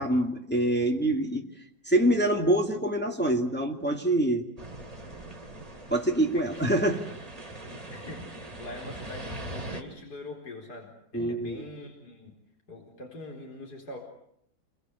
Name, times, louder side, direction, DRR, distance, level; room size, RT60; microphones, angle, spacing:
voice 1, 0.0-1.5 1.8-4.5 5.9-7.0 11.1-11.6, right 1 dB, 5° left, 2 dB, 2.5 m, -25 dB
sound 1, 4.6-9.8, right 1 dB, 20° right, 3.0 m, -41 dB
voice 2, 6.3-6.7 7.7-12.3 12.7-14.0, left 2 dB, 65° left, 1 dB, 4.9 m, -43 dB
28.5 x 23.5 x 8.3 m, 0.72 s
omnidirectional pair, 1.9 m